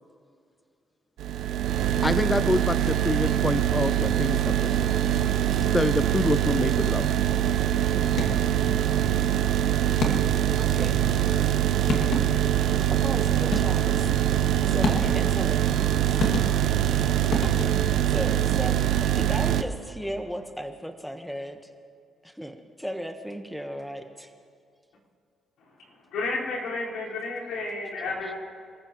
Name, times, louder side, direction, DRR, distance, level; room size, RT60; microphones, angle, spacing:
sound 1, 1.2-19.6, right 11 dB, 80° right, 0.7 m, -23 dB
voice 1, 2.0-4.7 5.7-7.1, left 2 dB, 20° left, 13 dB, 0.4 m, -27 dB
sound 2, 8.1-8.6 10.0-10.5 11.5-11.6 11.9-12.5 13.5-14.0 14.8-15.4 16.2-16.9 17.3-18.0, left 3 dB, 65° left, 2.3 m, -29 dB
voice 2, 10.5-11.0 12.9-14.1 14.7-15.9 18.1-18.7 19.1-21.6 22.2-24.3 28.2-28.3, equal, ahead, 6 dB, 1.2 m, -36 dB
voice 3, 26.1-28.4, left 3 dB, 85° left, -6 dB, 4.8 m, -31 dB
28.0 x 14.5 x 3.1 m, 2.3 s
cardioid pair, 90°, 0 cm